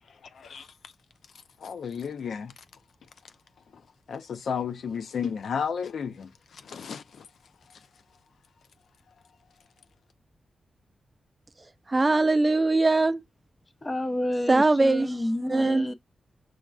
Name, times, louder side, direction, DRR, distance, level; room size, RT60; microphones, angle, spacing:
voice 1, 0.2-0.7 1.3-2.5 3.2-3.3 3.7-3.8 4.1-7.3 7.7-7.9, left 7 dB, 80° left, 0.4 m, -33 dB
voice 2, 11.9-13.2 14.5-15.1 15.5-15.9, right 2 dB, 25° right, 0.3 m, -21 dB
voice 3, 13.8-15.9, left 1 dB, 25° left, 0.7 m, -30 dB
6.2 x 2.2 x 2.3 m
wide cardioid pair, 100°, 0 cm